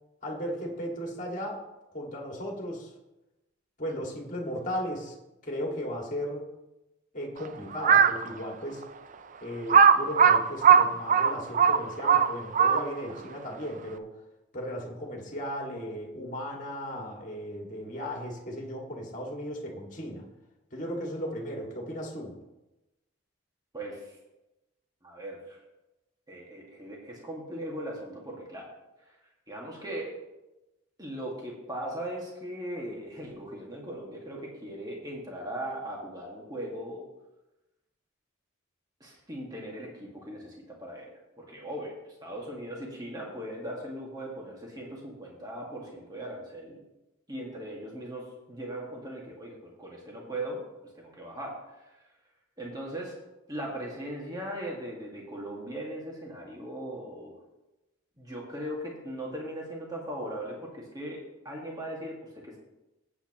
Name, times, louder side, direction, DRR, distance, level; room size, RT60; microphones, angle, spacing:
voice 1, 0.2-1.6 1.9-2.9 3.8-5.1 5.4-6.5 7.1-8.8 9.4-14.1 14.5-20.2 20.7-22.3, equal, 40° left, -1 dB, 2.1 m, -36 dB
Crow, 7.7-8.2 8.8-8.9 9.7-13.1, right 7 dB, 40° right, 0.4 m, -19 dB
voice 2, 23.7-24.2 25.0-25.6 26.3-28.7 29.1-29.2 29.5-30.1 31.0-37.1 39.0-46.8 47.3-50.6 50.9-52.1 52.6-53.2 53.5-57.4 58.2-62.6, right 1 dB, 20° right, -2 dB, 1.8 m, -39 dB
15.0 x 8.6 x 3.0 m, 0.99 s
head